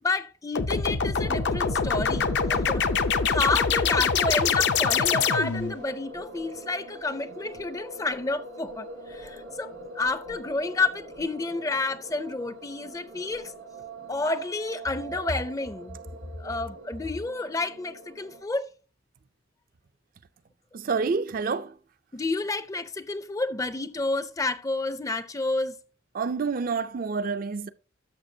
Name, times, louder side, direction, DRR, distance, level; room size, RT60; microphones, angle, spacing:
voice 1, 0.0-13.5 14.1-16.0 16.4-18.7 22.1-25.8, left 3 dB, 20° left, 0.5 m, -30 dB
sound 1, 0.6-5.8, left 5 dB, 60° left, 0.6 m, -24 dB
sound 2, 1.2-18.4, right 1 dB, 85° right, 1.9 m, -42 dB
voice 2, 20.7-21.8 26.1-27.7, right 5 dB, 45° right, 0.4 m, -28 dB
13.0 x 5.9 x 2.7 m
head